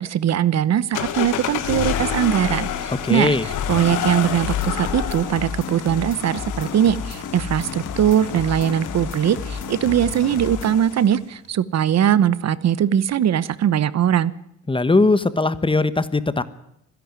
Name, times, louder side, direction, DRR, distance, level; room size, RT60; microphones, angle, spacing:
voice 1, 0.0-14.3, right 10 dB, 60° right, 18 dB, 0.9 m, -21 dB
sound 1, 0.9-11.2, left 9 dB, 85° left, 2.4 m, -29 dB
voice 2, 2.9-3.5 14.7-16.4, left 3 dB, 15° left, 14 dB, 1.2 m, -19 dB
sound 2, 4.3-10.8, left 5 dB, 40° left, 1.4 m, -33 dB
25.0 x 11.0 x 9.6 m, 0.80 s
cardioid pair, 90°, 30 cm